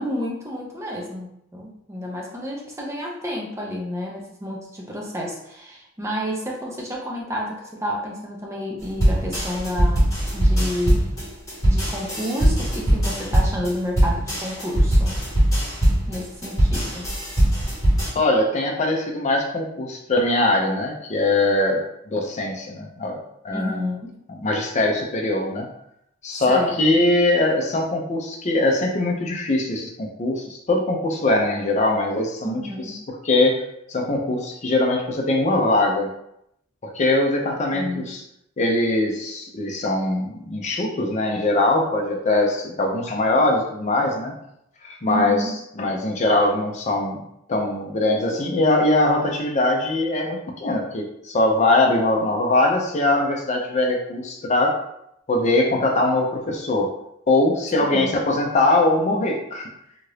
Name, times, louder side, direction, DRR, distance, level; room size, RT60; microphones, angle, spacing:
voice 1, 0.0-11.1 11.6-15.2 16.1-17.1 23.5-24.2 26.3-26.8 32.4-32.9 37.7-38.1 45.1-45.5 57.8-58.2, equal, 15° right, -2 dB, 0.6 m, -30 dB
sound 1, 9.0-18.1, right 1 dB, 15° left, 1.2 m, -20 dB
voice 2, 18.1-23.2 23.4-23.9 24.3-25.7 26.2-33.6 33.9-36.1 36.8-38.2 38.6-44.3 44.8-45.4 45.8-47.2 47.5-54.8 55.3-56.9 57.3-59.7, left 2 dB, 35° left, 1 dB, 0.5 m, -21 dB
2.8 x 2.4 x 3.2 m, 0.78 s
head